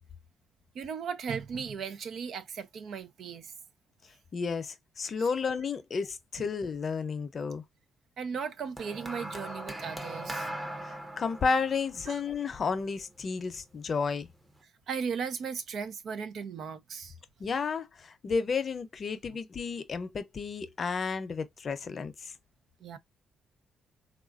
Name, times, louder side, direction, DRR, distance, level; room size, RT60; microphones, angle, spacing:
voice 1, 0.7-3.5 5.2-5.3 8.2-10.5 12.1-12.2 14.9-17.1 22.8-23.0, right 6 dB, 65° right, 0.5 m, -37 dB
voice 2, 4.3-7.6 10.8-14.3 17.4-22.3, left 5 dB, 45° left, 0.6 m, -32 dB
sound 1, 8.8-13.2 14.1-14.4, right 1 dB, 20° right, 0.8 m, -40 dB
3.6 x 2.4 x 2.4 m
cardioid pair, 90°, 0 cm